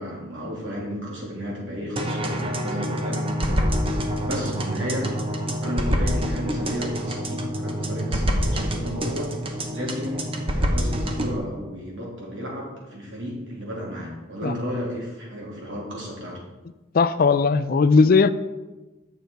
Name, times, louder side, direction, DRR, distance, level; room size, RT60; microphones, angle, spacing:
voice 1, 0.0-3.2 4.2-5.1 5.6-9.4 9.7-16.4, equal, 80° right, -3 dB, 2.9 m, -33 dB
sound 1, 2.0-11.4, equal, 30° right, 0.9 m, -26 dB
voice 2, 16.9-18.3, left 4 dB, 50° left, 13 dB, 0.4 m, -17 dB
9.0 x 6.7 x 4.5 m, 1.1 s
head